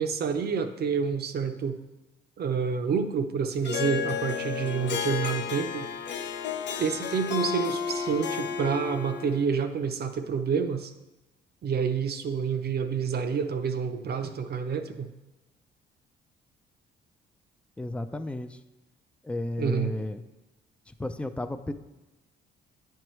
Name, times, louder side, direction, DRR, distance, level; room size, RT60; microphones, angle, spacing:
voice 1, 0.0-1.8 2.4-5.9 6.8-10.9 11.6-15.1 19.6-19.9, right 6 dB, 55° right, 8 dB, 0.6 m, -28 dB
Harp, 3.6-9.5, left 7 dB, 65° left, 0.6 m, -32 dB
voice 2, 17.8-18.6 19.2-20.2 20.9-21.7, left 1 dB, 5° left, 10 dB, 0.4 m, -33 dB
9.6 x 4.6 x 3.1 m, 1.1 s
cardioid pair, 90°, 20 cm